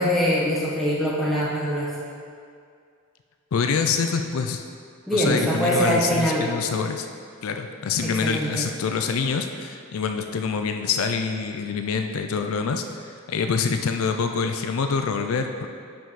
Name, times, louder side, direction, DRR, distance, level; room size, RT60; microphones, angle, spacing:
voice 1, 0.0-1.9 5.1-6.4 8.0-8.7, equal, ahead, -7 dB, 1.3 m, -23 dB
voice 2, 3.5-4.6 5.1-7.1 7.4-15.7, left 5 dB, 70° left, 6 dB, 0.4 m, -26 dB
5.7 x 5.3 x 5.6 m, 2.3 s
head